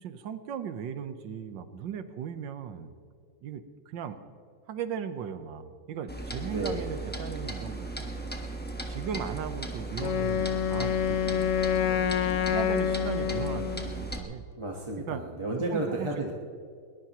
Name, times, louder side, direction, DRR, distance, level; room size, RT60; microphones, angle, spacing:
voice 1, 0.0-2.9 3.4-4.2 4.7-8.3 8.9-11.5 11.9-12.2 12.5-14.5 15.1-15.2 15.7-16.3, right 8 dB, 70° right, 10 dB, 1.6 m, -37 dB
Clock, 6.1-14.2, right 2 dB, 5° left, 1.0 m, -37 dB
voice 2, 6.5-6.9 14.6-16.3, right 2 dB, 20° right, -1 dB, 1.1 m, -32 dB
Wind instrument woodwind instrument, 10.0-14.0, left 9 dB, 85° left, 0.6 m, -27 dB
21.5 x 20.5 x 3.0 m, 2.2 s
omnidirectional pair, 2.1 m